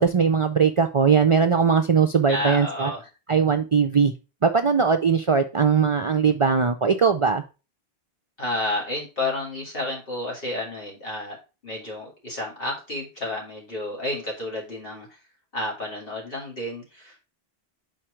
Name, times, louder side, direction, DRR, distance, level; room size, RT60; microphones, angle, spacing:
voice 1, 0.0-2.9 3.3-4.1 4.4-7.4, right 6 dB, 45° right, 0.4 m, -20 dB
voice 2, 2.3-3.0 8.4-15.2 15.5-17.2, left 2 dB, 65° left, 2.5 m, -31 dB
5.1 x 4.4 x 4.8 m
omnidirectional pair, 1.0 m